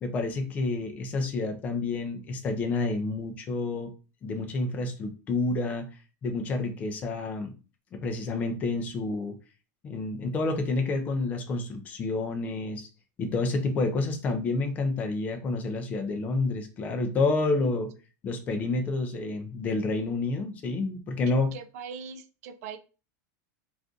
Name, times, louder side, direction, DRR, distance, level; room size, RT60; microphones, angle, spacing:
voice 1, 0.0-3.9 4.2-5.9 6.2-7.5 8.0-9.4 9.8-12.9 13.2-17.9 18.2-21.5, left 3 dB, 15° left, 5 dB, 0.3 m, -29 dB
voice 2, 21.3-22.8, right 6 dB, 55° right, 10 dB, 0.4 m, -41 dB
2.5 x 2.3 x 3.7 m, 0.33 s
supercardioid pair, 180°, 10 cm